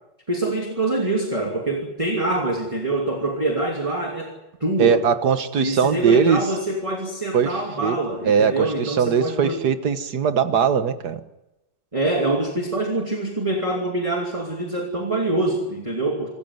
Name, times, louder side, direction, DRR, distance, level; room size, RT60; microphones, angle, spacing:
voice 1, 0.3-4.3 4.6-5.0 5.6-9.6 11.9-16.3, right 2 dB, 15° right, 1 dB, 2.7 m, -25 dB
voice 2, 4.8-6.4 7.3-8.0 8.2-11.2, right 7 dB, 60° right, 10 dB, 1.9 m, -20 dB
25.5 x 14.5 x 9.5 m, 0.95 s
omnidirectional pair, 2.0 m